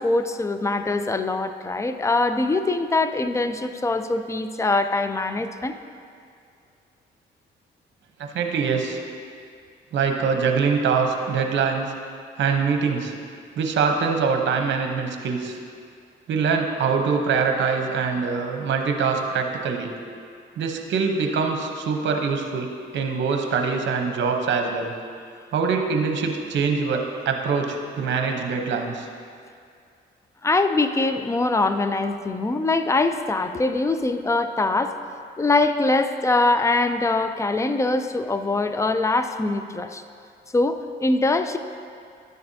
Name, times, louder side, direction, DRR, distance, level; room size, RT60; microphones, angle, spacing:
voice 1, 0.0-5.8 30.4-34.9 35.4-40.0 40.5-41.6, left 2 dB, 15° left, 9 dB, 0.4 m, -23 dB
voice 2, 8.2-9.0 9.9-11.9 12.4-13.1 13.6-15.6 16.3-19.9 20.6-22.7 22.9-24.9 25.5-29.1, right 5 dB, 65° right, 4 dB, 0.9 m, -24 dB
10.5 x 6.7 x 2.7 m, 2.3 s
cardioid pair, 90°, 20 cm